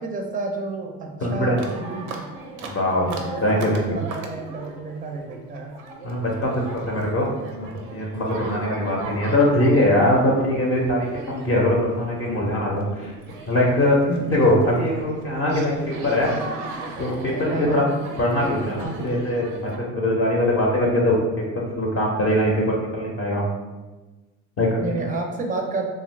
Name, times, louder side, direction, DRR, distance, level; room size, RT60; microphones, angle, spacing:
voice 1, 0.0-2.3 3.0-5.8 17.5-17.9 24.7-25.9, right 3 dB, 20° right, 2 dB, 0.4 m, -31 dB
voice 2, 1.2-1.6 2.6-3.1 3.4-4.0 6.0-7.3 7.5-13.1 13.5-16.3 17.0-17.8 18.2-21.2 21.6-23.4 24.6-25.1, left 1 dB, 35° left, -3 dB, 0.6 m, -22 dB
sound 1, 1.6-19.8, right 3 dB, 90° right, 0.6 m, -38 dB
2.8 x 2.4 x 3.1 m, 1.2 s
supercardioid pair, 110°, 38 cm